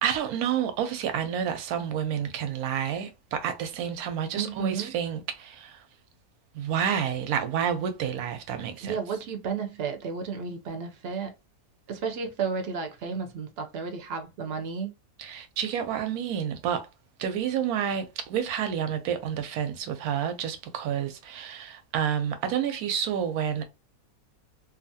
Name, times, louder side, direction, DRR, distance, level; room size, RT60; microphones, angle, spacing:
voice 1, 0.0-5.8 6.5-9.0 15.2-16.9 17.2-23.6, right 8 dB, 90° right, 1.1 m, -29 dB
voice 2, 4.4-4.9 8.8-11.3 11.9-14.9, right 5 dB, 60° right, 0.7 m, -32 dB
2.7 x 2.4 x 2.6 m
omnidirectional pair, 1.5 m